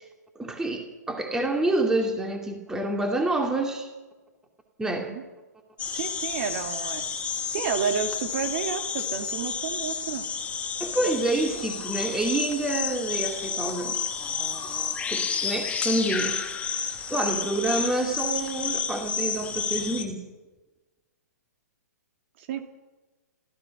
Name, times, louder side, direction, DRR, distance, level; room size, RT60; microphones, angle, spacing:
voice 1, 0.4-3.9 4.8-5.1 10.8-13.9 15.1-16.4 17.1-20.2, right 2 dB, 5° right, 3 dB, 2.5 m, -27 dB
voice 2, 4.8-5.2 5.9-7.1 7.5-10.3 22.4-22.6, right 7 dB, 45° right, 6 dB, 2.4 m, -31 dB
sound 1, 5.8-20.0, left 6 dB, 15° left, 1.8 m, -31 dB
29.0 x 15.0 x 6.0 m, 1.2 s
hypercardioid pair, 135°, 9 cm